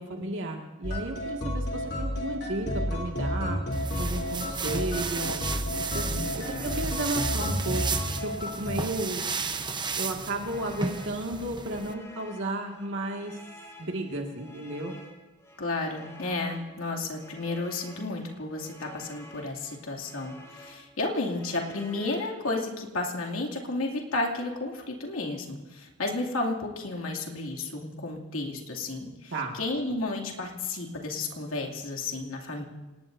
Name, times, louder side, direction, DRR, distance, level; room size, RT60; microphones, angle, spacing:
voice 1, 0.0-3.6 4.0-5.3 5.9-7.9 8.2-9.3 10.0-13.4 13.8-15.0 29.3-29.6, right 2 dB, 65° right, 1 dB, 2.0 m, -33 dB
sound 1, 0.8-8.8, equal, 55° left, 3.4 m, -31 dB
voice 2, 3.2-3.6 6.0-6.7 15.6-32.6, left 2 dB, 90° left, 0 dB, 2.6 m, -32 dB
sound 2, 3.7-11.9, right 4 dB, 20° right, 0.9 m, -34 dB
sound 3, 6.2-22.7, equal, 15° left, 3.3 m, -51 dB
27.5 x 19.5 x 2.7 m, 1.1 s
head